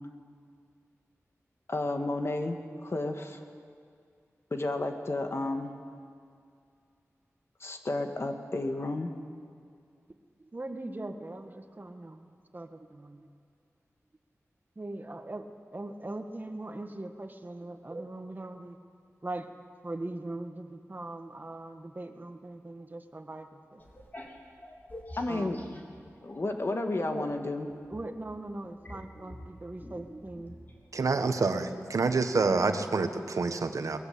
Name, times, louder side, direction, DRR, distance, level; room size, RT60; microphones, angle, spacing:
voice 1, 1.7-3.5 4.5-5.7 7.6-9.1 25.2-25.8 26.2-27.7, left 2 dB, 50° left, 4 dB, 2.1 m, -32 dB
voice 2, 10.5-13.3 14.8-18.8 19.2-19.5 19.8-23.8 25.3-25.5 27.1-27.3 27.9-30.6, right 2 dB, 35° right, 5 dB, 1.7 m, -40 dB
sound 1, 23.8-26.7 27.0-31.8, equal, 35° left, 3.3 m, -48 dB
voice 3, 30.9-34.0, right 4 dB, 85° right, 7 dB, 1.3 m, -27 dB
22.0 x 20.5 x 8.6 m, 2.3 s
wide cardioid pair, 90°, 5 cm